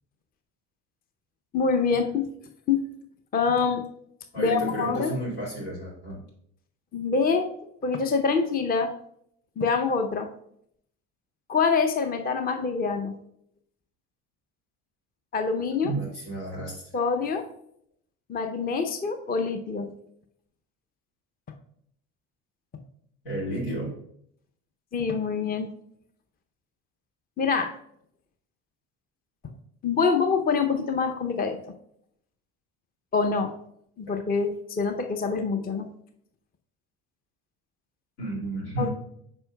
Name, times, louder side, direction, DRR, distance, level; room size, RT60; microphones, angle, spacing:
voice 1, 1.5-2.3 2.7-2.8 3.3-3.8 4.4-5.1 6.9-7.5 7.8-8.9 9.6-10.3 11.5-13.2 15.3-15.9 16.9-17.4 18.3-19.9 24.9-25.7 27.4-27.7 29.8-31.7 33.1-33.5 34.0-35.9 38.8-38.9, left 5 dB, 20° left, 6 dB, 0.6 m, -25 dB
voice 2, 4.3-6.2 15.8-16.8 23.2-24.0 38.2-38.9, right 1 dB, 75° left, -4 dB, 2.5 m, -32 dB
8.8 x 5.3 x 2.2 m, 0.71 s
hypercardioid pair, 55°, 50 cm